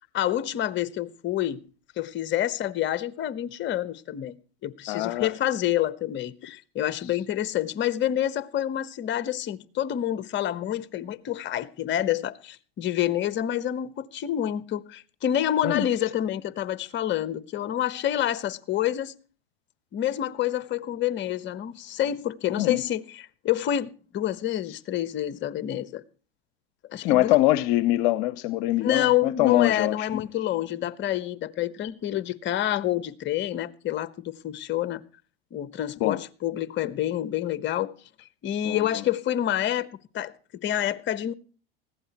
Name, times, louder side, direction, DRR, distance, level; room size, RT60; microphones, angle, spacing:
voice 1, 0.1-1.6 2.0-4.3 4.6-19.1 19.9-26.0 26.9-27.4 28.8-35.0 35.5-37.9 38.4-39.9 40.1-40.3 40.6-41.3, left 11 dB, 40° left, 1.1 m, -28 dB
voice 2, 4.9-5.3 15.6-15.9 22.6-22.8 27.0-30.1 36.0-36.2 36.8-36.9 38.6-39.0, left 16 dB, 60° left, 0.9 m, -24 dB
20.5 x 15.5 x 3.0 m
hypercardioid pair, 90°, 29 cm